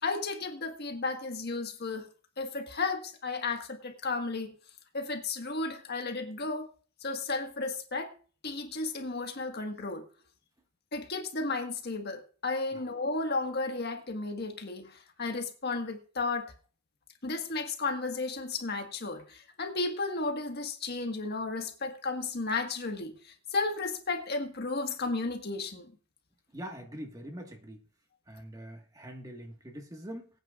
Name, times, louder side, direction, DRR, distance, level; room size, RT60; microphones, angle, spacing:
voice 1, 0.0-2.1 2.4-4.6 4.9-6.7 7.0-8.2 8.4-10.0 10.9-16.5 17.2-25.9, left 3 dB, 50° left, 5 dB, 1.6 m, -33 dB
voice 2, 26.5-27.8 28.3-30.3, equal, 15° right, 3 dB, 1.6 m, -43 dB
22.5 x 9.1 x 2.5 m, 0.39 s
head